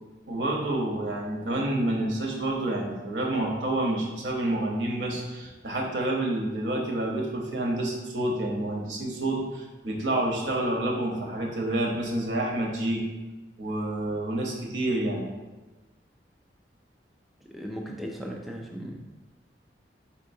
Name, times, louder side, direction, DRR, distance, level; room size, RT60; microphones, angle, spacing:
voice 1, 0.3-13.0 13.6-15.2, right 1 dB, 85° right, -1 dB, 0.9 m, -28 dB
voice 2, 17.5-19.1, equal, ahead, -1 dB, 0.3 m, -37 dB
4.4 x 3.6 x 2.6 m, 1.2 s
head